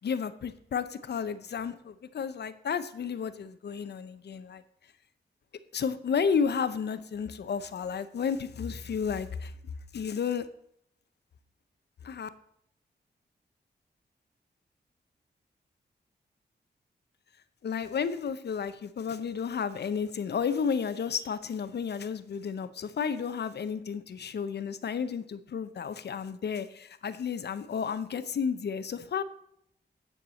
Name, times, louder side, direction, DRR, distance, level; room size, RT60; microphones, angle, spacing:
voice 1, 0.0-4.6 5.7-9.5 9.9-10.5 12.0-12.3 17.6-29.2, left 6 dB, 65° left, 13 dB, 0.8 m, -32 dB
9.9 x 4.7 x 7.6 m, 0.71 s
cardioid pair, 70°, 18 cm